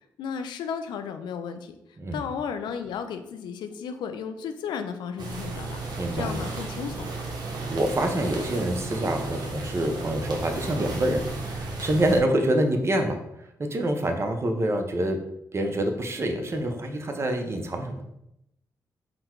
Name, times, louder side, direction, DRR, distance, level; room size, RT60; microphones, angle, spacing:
voice 1, 0.2-1.8 2.1-5.8 6.1-7.1, left 7 dB, 85° left, 8 dB, 0.4 m, -34 dB
sound 1, 5.2-12.2, right 2 dB, 65° right, 0.8 m, -34 dB
voice 2, 6.0-6.4 7.7-13.2 13.6-15.2 15.5-18.1, right 1 dB, 35° right, 5 dB, 0.7 m, -26 dB
3.9 x 2.2 x 4.4 m, 0.82 s
cardioid pair, 65°, 8 cm